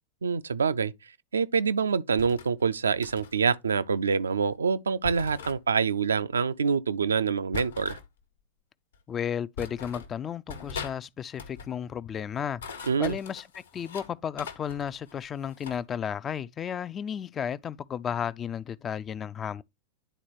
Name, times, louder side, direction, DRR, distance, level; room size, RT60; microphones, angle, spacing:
voice 1, 0.2-0.9 1.3-8.0 12.9-13.2, right 5 dB, 70° right, 0.4 m, -26 dB
sound 1, 2.2-2.5 3.0-3.4 5.0-5.6 7.5-8.1 8.9-9.0 9.6-10.1 10.5-11.0 11.3-11.7 12.4-14.1 14.4-15.8, left 6 dB, 65° left, 1.1 m, -41 dB
voice 2, 9.1-12.6 13.0-19.6, left 8 dB, 25° left, 0.4 m, -33 dB
10.0 x 4.1 x 2.9 m
figure-of-eight pair, 90°, 0 cm